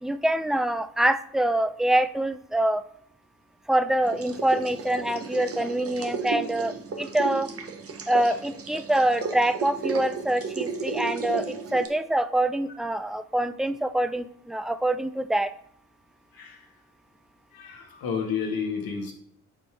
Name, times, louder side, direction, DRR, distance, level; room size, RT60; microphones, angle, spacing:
voice 1, 0.0-2.8 3.7-7.5 8.1-15.5, right 1 dB, ahead, 12 dB, 0.4 m, -25 dB
sound 1, 4.0-11.9, right 5 dB, 40° right, 1.0 m, -34 dB
voice 2, 17.5-19.1, left 6 dB, 70° left, 2 dB, 1.4 m, -31 dB
7.3 x 4.3 x 3.3 m, 0.64 s
hypercardioid pair, 45°, 37 cm